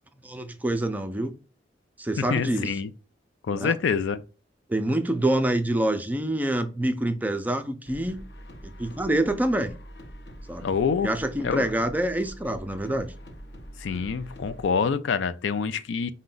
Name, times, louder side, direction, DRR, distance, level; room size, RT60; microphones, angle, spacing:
voice 1, 0.2-1.4 2.0-2.7 3.5-3.8 4.7-8.2 8.6-9.8 10.5-10.7 11.0-13.1, right 1 dB, 10° right, 0.4 m, -26 dB
voice 2, 2.2-2.9 3.5-4.2 10.6-11.1 11.4-11.7 13.8-16.1, left 6 dB, 80° left, 0.4 m, -26 dB
sound 1, 7.8-14.6, equal, 60° left, 0.8 m, -44 dB
4.7 x 2.1 x 3.8 m
head